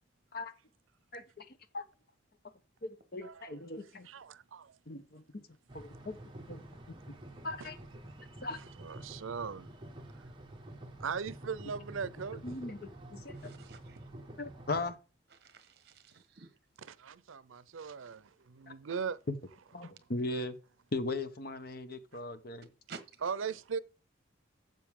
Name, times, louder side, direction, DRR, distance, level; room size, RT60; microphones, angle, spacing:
voice 1, 1.1-1.8 2.8-4.1 4.9-5.4 5.7-6.2 6.5-7.2 7.4-7.8 8.4-8.6 12.4-13.5 14.4-15.0 18.7-18.8 19.3-19.4 19.7-20.6 20.9-22.7, left 2 dB, 50° left, 0.9 m, -39 dB
voice 2, 3.2-3.6 4.1-4.7 8.8-9.7 11.0-12.4 16.8-19.2 19.8-19.9 23.2-23.8, right 6 dB, 85° right, 0.6 m, -39 dB
sound 1, 5.7-14.9, right 1 dB, 25° right, 1.3 m, -49 dB
voice 3, 13.3-14.0 15.4-16.5 22.9-23.2, right 4 dB, 55° right, 1.2 m, -51 dB
12.0 x 7.5 x 3.6 m
head